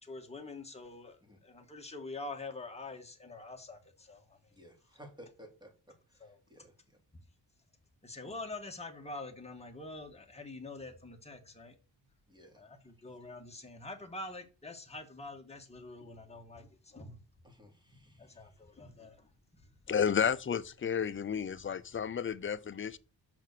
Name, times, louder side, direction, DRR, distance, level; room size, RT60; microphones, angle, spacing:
voice 1, 0.0-1.2 1.4-4.4 6.2-6.4 8.0-11.7 12.6-17.2 18.2-19.3, left 2 dB, 15° left, 1.8 m, -45 dB
voice 2, 4.5-7.0 12.3-13.1 17.4-18.5, equal, 10° right, 3.0 m, -57 dB
voice 3, 19.9-23.0, left 7 dB, 30° left, 0.6 m, -32 dB
6.0 x 6.0 x 6.8 m
cardioid pair, 105°, 41 cm